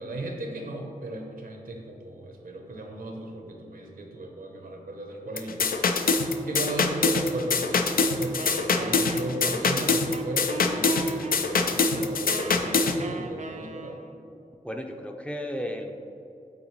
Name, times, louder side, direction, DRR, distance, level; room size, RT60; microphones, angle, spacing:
voice 1, 0.0-6.1 6.4-14.0, right 2 dB, 75° right, 2 dB, 0.8 m, -36 dB
sound 1, 5.4-13.0, left 4 dB, 80° left, 0.4 m, -24 dB
Wind instrument woodwind instrument, 8.4-14.2, right 4 dB, 55° right, 0.4 m, -39 dB
voice 2, 14.6-15.9, equal, 10° left, 3 dB, 0.5 m, -34 dB
8.4 x 3.9 x 3.1 m, 2.7 s
wide cardioid pair, 55°, 15 cm